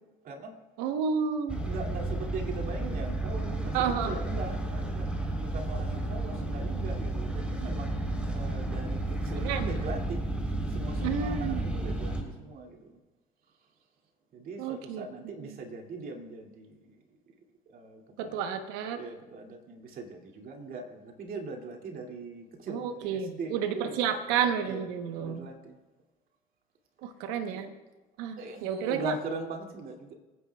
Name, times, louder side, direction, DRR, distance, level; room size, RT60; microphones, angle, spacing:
voice 1, 0.2-0.6 1.6-3.8 4.0-5.1 5.4-10.2 10.7-13.0 14.3-17.0 17.7-18.4 18.9-24.4 24.6-25.8 27.5-27.6 28.4-30.2, right 3 dB, 55° right, 2 dB, 2.5 m, -40 dB
voice 2, 0.8-1.6 3.7-4.2 9.4-9.7 11.0-11.6 14.6-15.0 18.2-19.0 22.7-25.5 27.0-27.7 28.2-29.1, right 7 dB, 80° right, 7 dB, 1.0 m, -31 dB
sound 1, 1.5-12.2, right 2 dB, 5° right, 3.6 m, -32 dB
27.0 x 9.8 x 2.3 m, 1.2 s
supercardioid pair, 75°, 18 cm